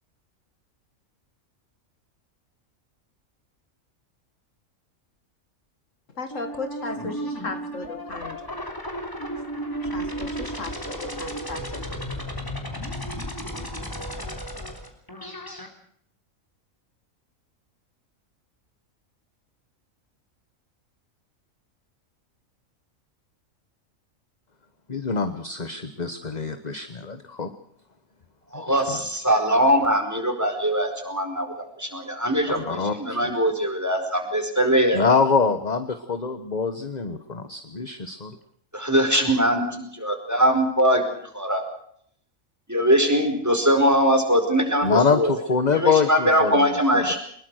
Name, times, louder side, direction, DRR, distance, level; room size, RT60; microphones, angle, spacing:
voice 1, 6.2-8.4 9.8-12.0, left 3 dB, 65° left, 9 dB, 2.2 m, -36 dB
Ufo Ray Gun Space Star Trek Wars Electronic Synth Theremin, 6.3-15.7, equal, 15° left, 3.4 m, -33 dB
voice 2, 24.9-27.5 28.5-29.0 32.5-33.4 34.9-38.3 44.8-47.2, left 5 dB, 35° left, 10 dB, 1.3 m, -25 dB
voice 3, 28.5-35.0 38.7-41.6 42.7-45.3 45.7-47.2, equal, 10° right, 4 dB, 4.9 m, -22 dB
23.5 x 21.5 x 6.4 m, 0.66 s
omnidirectional pair, 1.4 m